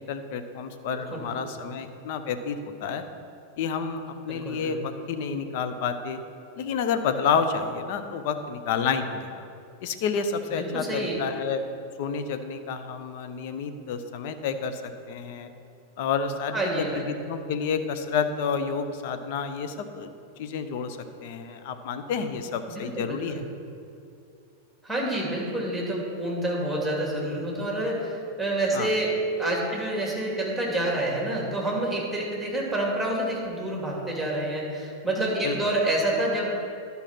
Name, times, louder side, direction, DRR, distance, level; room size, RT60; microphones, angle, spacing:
voice 1, 0.0-3.0 3.6-6.2 6.6-9.4 9.8-11.6 12.0-15.5 16.0-20.1 20.4-23.4 28.7-28.9 35.4-35.5, left 6 dB, 50° left, 8 dB, 0.7 m, -30 dB
voice 2, 4.3-4.7 10.6-11.2 16.5-17.0 22.7-23.4 24.8-36.5, right 1 dB, ahead, -3 dB, 2.5 m, -28 dB
11.5 x 5.5 x 5.9 m, 2.5 s
figure-of-eight pair, 90°, 0 cm